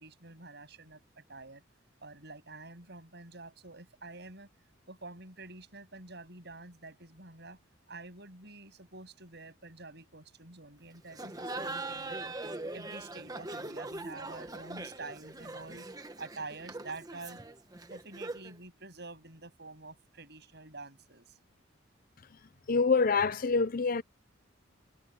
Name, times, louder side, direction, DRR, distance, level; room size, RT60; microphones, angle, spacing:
voice 1, 0.0-1.6 2.0-4.5 4.9-7.6 7.9-12.3 12.7-15.9 16.2-17.4 17.9-21.4, right 3 dB, 55° right, 7.7 m, -47 dB
Laughter, 11.1-18.6, right 2 dB, 20° right, 1.3 m, -41 dB
voice 2, 22.7-24.0, left 4 dB, 45° left, 0.6 m, -26 dB
head